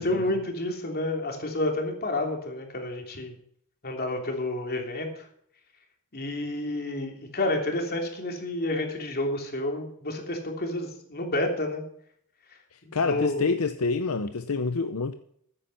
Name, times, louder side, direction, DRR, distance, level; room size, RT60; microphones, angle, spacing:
voice 1, 0.0-3.3 3.8-5.3 6.1-11.8 12.8-13.6, left 1 dB, 45° left, 3.1 m, -30 dB
voice 2, 12.9-15.1, left 4 dB, 70° left, 0.7 m, -27 dB
14.0 x 9.8 x 5.8 m
head